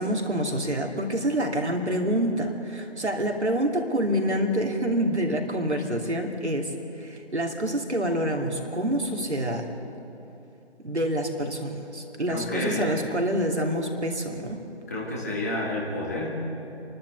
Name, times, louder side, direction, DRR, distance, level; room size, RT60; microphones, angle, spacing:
voice 1, 0.0-9.7 10.8-14.6, equal, 75° right, 2 dB, 2.9 m, -27 dB
voice 2, 12.3-13.1 14.9-16.4, left 1 dB, 15° left, -4 dB, 1.8 m, -30 dB
27.5 x 12.0 x 8.2 m, 2.9 s
figure-of-eight pair, 160°, 34 cm